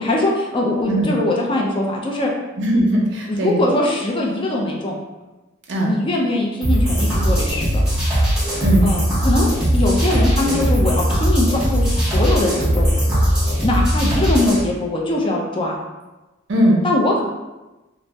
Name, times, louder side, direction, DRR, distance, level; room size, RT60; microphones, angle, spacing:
voice 1, 0.0-2.3 3.3-5.0 5.8-7.8 8.8-12.9 13.6-15.8 16.8-17.2, left 2 dB, 25° left, -1 dB, 0.4 m, -21 dB
voice 2, 2.6-3.6 5.7-5.9 8.6-8.9 10.4-10.6 16.5-16.9, right 1 dB, 60° right, -1 dB, 0.6 m, -19 dB
sound 1, 6.6-14.6, equal, 5° right, 0.9 m, -19 dB
2.6 x 2.0 x 3.3 m, 1.1 s
head